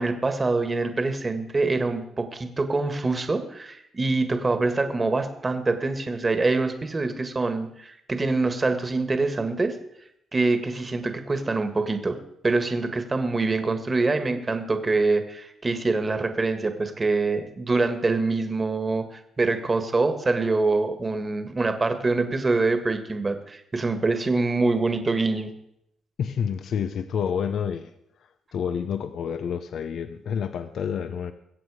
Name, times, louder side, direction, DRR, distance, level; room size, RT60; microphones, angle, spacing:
voice 1, 0.0-9.8 10.3-12.2 12.4-25.5, right 3 dB, 25° right, 8 dB, 1.7 m, -25 dB
voice 2, 26.2-27.9 28.5-31.3, left 7 dB, 65° left, 10 dB, 0.7 m, -28 dB
21.5 x 8.0 x 4.9 m, 0.77 s
cardioid pair, 90°, 0 cm